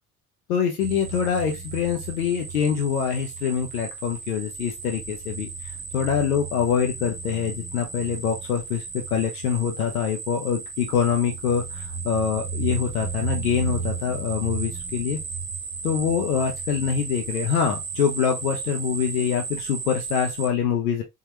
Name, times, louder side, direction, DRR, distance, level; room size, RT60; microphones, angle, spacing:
voice 1, 0.5-15.2 15.8-21.0, left 7 dB, 90° left, 0.6 m, -25 dB
sound 1, 0.8-20.5, right 5 dB, 50° right, 1.3 m, -34 dB
3.6 x 2.3 x 2.9 m
hypercardioid pair, 55°, 43 cm